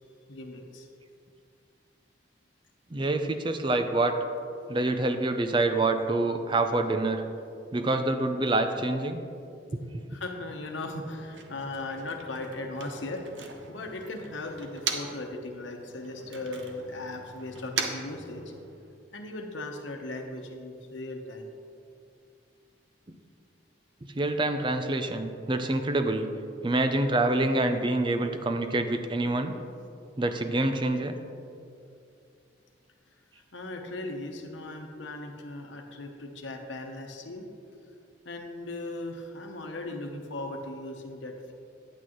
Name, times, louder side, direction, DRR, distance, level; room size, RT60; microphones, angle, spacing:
voice 1, 0.3-0.9 10.1-18.4 19.1-21.5 33.5-37.5 38.2-41.5, left 2 dB, 85° left, 3 dB, 1.0 m, -38 dB
voice 2, 2.9-4.1 4.7-7.2 7.7-9.2 9.7-10.0 23.1-23.2 24.1-26.3 26.6-29.5 30.2-31.2, right 2 dB, 25° right, 7 dB, 0.4 m, -26 dB
Motor vehicle (road), 10.9-15.3 15.6-18.9, right 5 dB, 75° right, 0.8 m, -39 dB
9.7 x 8.6 x 3.1 m, 2.5 s
head